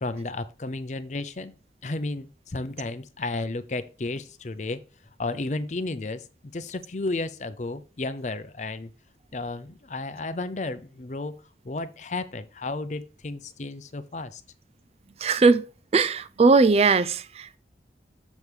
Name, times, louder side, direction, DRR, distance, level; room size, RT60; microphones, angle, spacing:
voice 1, 0.0-1.5 1.8-4.8 5.2-6.2 6.5-8.9 9.3-11.4 11.6-14.4, left 2 dB, 40° left, 0.6 m, -33 dB
voice 2, 15.2-15.6 15.9-17.6, right 4 dB, 35° right, 0.3 m, -19 dB
7.1 x 6.2 x 3.3 m
head